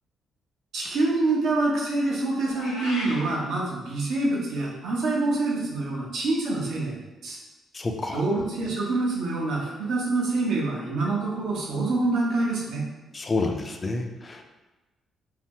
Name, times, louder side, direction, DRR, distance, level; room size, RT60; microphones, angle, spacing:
voice 1, 0.7-7.4 8.1-12.8, right 2 dB, 75° right, -3 dB, 0.8 m, -26 dB
Meow, 2.5-3.3, left 1 dB, 90° left, 0.8 m, -35 dB
voice 2, 7.7-8.2 13.1-14.4, left 3 dB, 30° left, 4 dB, 0.4 m, -29 dB
2.7 x 2.0 x 3.6 m, 1.1 s
cardioid pair, 90°, 0 cm